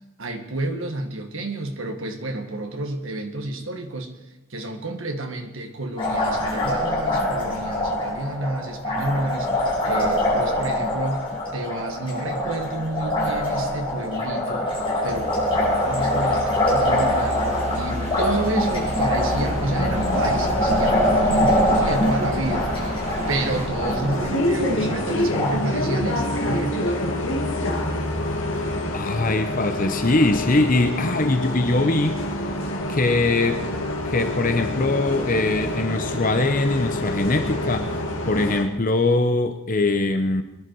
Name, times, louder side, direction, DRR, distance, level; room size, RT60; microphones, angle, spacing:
voice 1, 0.2-4.1 4.5-9.5 9.8-11.3 11.5-17.5 17.8-22.7 23.3-26.9, right 2 dB, 70° right, 5 dB, 1.8 m, -29 dB
Liquid, 6.0-25.5, left 1 dB, 25° left, 5.3 m, -24 dB
sound 1, 15.1-23.7, right 1 dB, 30° right, 1.6 m, -33 dB
Bus, 19.4-38.6, left 1 dB, 70° left, 2.7 m, -27 dB
voice 2, 28.9-32.2 32.9-33.6 34.0-38.0 38.3-40.4, left 2 dB, 40° left, 7 dB, 0.9 m, -22 dB
22.5 x 11.0 x 4.7 m, 1.0 s
head